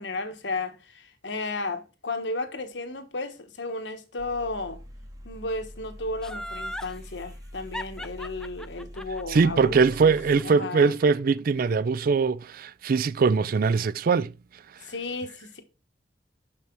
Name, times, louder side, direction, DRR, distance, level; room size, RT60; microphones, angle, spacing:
voice 1, 0.0-4.8 5.2-10.1 10.4-10.9 14.8-15.6, left 2 dB, 85° left, 1.3 m, -33 dB
sound 1, 4.2-10.4, equal, 20° right, 1.0 m, -44 dB
Laughter, 6.2-6.9 7.7-10.8 11.2-11.3, left 1 dB, 5° left, 0.4 m, -37 dB
voice 2, 9.3-14.3, right 5 dB, 55° right, 0.4 m, -22 dB
6.2 x 5.8 x 4.6 m
head